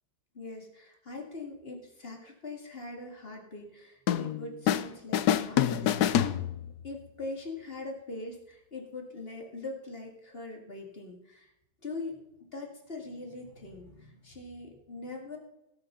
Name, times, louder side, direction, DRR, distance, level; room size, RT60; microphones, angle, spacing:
voice 1, 0.3-6.0 6.8-11.5 11.8-12.2 12.5-15.4, left 2 dB, 30° left, 2 dB, 2.4 m, -42 dB
sound 1, 4.1-4.9 5.1-6.9, left 10 dB, 70° left, 1.1 m, -27 dB
17.0 x 6.4 x 5.5 m, 0.85 s
omnidirectional pair, 2.0 m